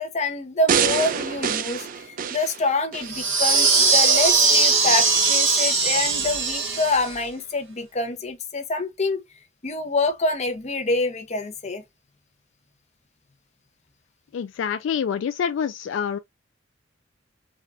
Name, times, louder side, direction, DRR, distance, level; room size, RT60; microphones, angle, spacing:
voice 1, 0.0-9.2 9.6-11.8, left 2 dB, 35° left, 0.7 m, -26 dB
sound 1, 0.7-3.2 3.7-3.8, right 7 dB, 45° right, 0.3 m, -25 dB
sound 2, 3.1-7.1, right 4 dB, 75° right, 1.7 m, -20 dB
voice 2, 14.3-16.2, left 7 dB, 65° left, 0.3 m, -26 dB
3.6 x 2.2 x 2.4 m
head